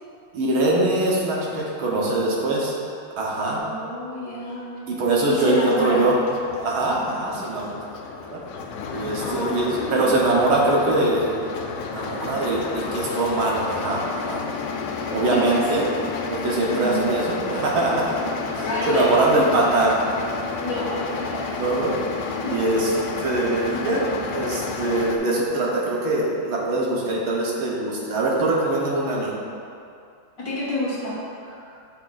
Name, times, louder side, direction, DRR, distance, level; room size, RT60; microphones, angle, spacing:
voice 1, 0.3-2.7 3.2-3.6 4.9-6.2 6.6-7.7 8.3-8.4 8.9-11.3 11.9-14.4 15.1-15.8 16.3-18.1 18.5-20.0 21.6-22.0 22.5-29.3, right 2 dB, 85° right, -4 dB, 1.9 m, -22 dB
voice 2, 3.5-4.7 5.3-6.1 9.2-10.1 15.3-15.6 16.7-17.1 18.6-19.3 20.6-21.6 22.4-22.6 30.4-31.2, left 1 dB, 45° left, -8 dB, 1.6 m, -28 dB
sound 1, 5.3-25.2, left 4 dB, 85° left, 1.4 m, -31 dB
7.1 x 6.1 x 2.5 m, 2.5 s
omnidirectional pair, 2.2 m